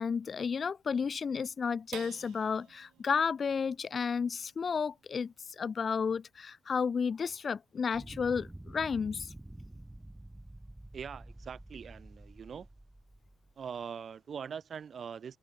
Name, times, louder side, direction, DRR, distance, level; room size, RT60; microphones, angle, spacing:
voice 1, 0.0-9.3, left 6 dB, 45° left, 0.8 m, -32 dB
sound 1, 1.9-8.6 9.1-9.2 9.6-10.1, right 14 dB, 85° right, 3.7 m, -56 dB
sound 2, 7.9-13.7, right 1 dB, 10° right, 1.8 m, -49 dB
voice 2, 10.9-12.7 13.6-15.4, right 7 dB, 50° right, 1.8 m, -42 dB
open air
cardioid pair, 90°, 0 cm